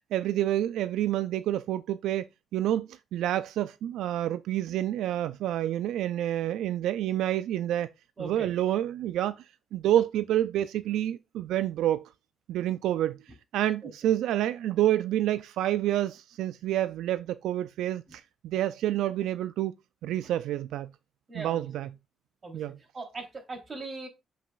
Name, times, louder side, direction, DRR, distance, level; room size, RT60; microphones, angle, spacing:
voice 1, 0.1-2.2 2.5-7.9 8.2-9.4 9.7-12.0 12.5-13.2 13.5-19.7 20.0-20.9 21.4-21.9 22.5-22.7, right 12 dB, 85° right, 0.3 m, -28 dB
voice 2, 8.2-8.5 13.8-14.1 18.1-18.2 21.3-21.9 22.4-24.1, right 3 dB, 35° right, 3.5 m, -41 dB
7.5 x 5.4 x 2.4 m
cardioid pair, 90°, 0 cm